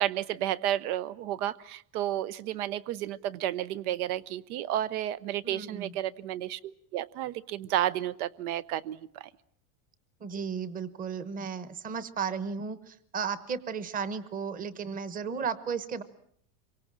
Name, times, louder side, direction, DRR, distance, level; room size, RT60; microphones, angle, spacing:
voice 1, 0.0-6.6 6.9-9.3, right 12 dB, 85° right, 17 dB, 1.0 m, -31 dB
voice 2, 5.4-5.9 10.2-16.0, right 6 dB, 20° right, 15 dB, 1.0 m, -34 dB
26.5 x 24.0 x 7.5 m, 0.64 s
cardioid pair, 170°, 43 cm